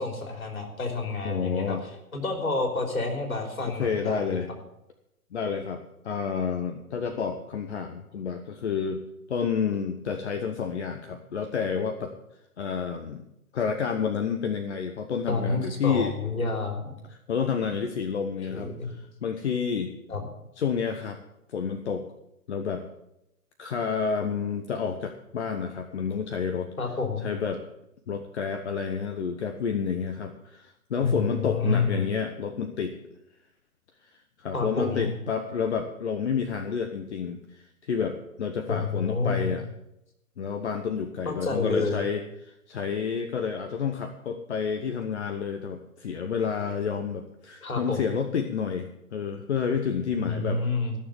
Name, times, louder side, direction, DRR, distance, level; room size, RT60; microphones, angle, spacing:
voice 1, 0.0-4.4 15.3-16.9 18.5-18.9 20.1-20.3 26.8-27.3 31.0-32.0 34.5-35.1 38.7-39.5 41.3-42.1 47.6-48.1 50.1-51.0, left 3 dB, 65° left, 3 dB, 3.7 m, -29 dB
voice 2, 1.2-1.8 3.7-4.5 5.3-9.0 9.3-12.1 12.6-13.2 13.5-16.1 17.3-19.0 19.2-19.9 20.6-21.2 21.5-22.0 22.5-22.8 23.6-26.7 27.2-27.6 28.1-32.9 34.0-34.1 34.4-39.6 40.4-50.6, left 6 dB, 50° left, 5 dB, 1.1 m, -29 dB
15.0 x 6.8 x 8.6 m, 0.86 s
figure-of-eight pair, 130°, 44 cm